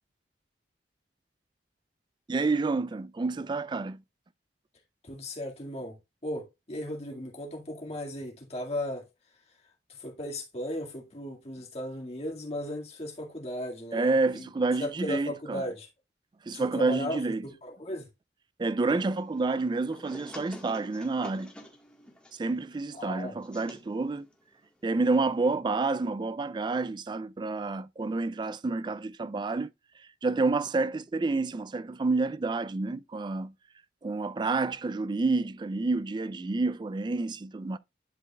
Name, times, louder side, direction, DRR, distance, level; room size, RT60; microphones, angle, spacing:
voice 1, 2.3-4.0 13.9-15.6 16.4-17.4 18.6-21.5 22.3-24.3 24.8-29.7 30.2-33.5 34.0-37.8, right 3 dB, 25° right, 0.3 m, -29 dB
voice 2, 5.0-6.0 6.2-9.0 9.9-14.5 14.8-15.9 16.5-18.1 22.9-23.4, left 1 dB, 35° left, 2.0 m, -36 dB
sound 1, 18.9-25.5, equal, 5° left, 1.5 m, -50 dB
11.0 x 4.9 x 2.3 m
head